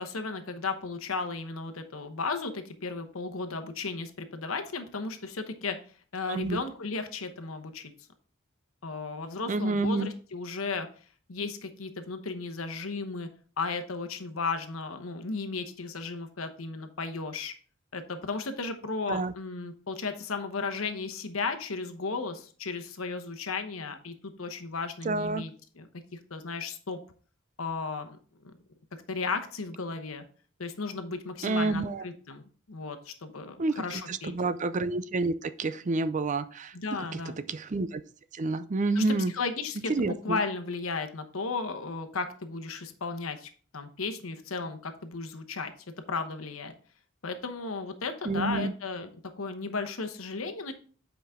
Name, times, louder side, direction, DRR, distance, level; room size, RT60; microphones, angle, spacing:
voice 1, 0.0-5.8 6.1-7.9 8.8-10.9 11.3-13.3 13.6-17.5 17.9-27.0 27.6-28.2 28.4-28.5 29.1-30.2 30.6-32.4 32.7-34.3 36.7-37.4 39.0-45.7 46.1-46.7 47.2-49.1 49.4-50.7, left 4 dB, 85° left, 8 dB, 1.0 m, -35 dB
voice 2, 6.3-6.6 9.5-10.1 19.1-19.3 25.0-25.4 31.4-32.0 33.6-36.8 37.1-37.2 37.5-38.0 38.3-39.3 39.9-40.4 48.2-48.7, right 3 dB, 35° right, 13 dB, 0.4 m, -29 dB
8.1 x 5.1 x 3.6 m, 0.42 s
head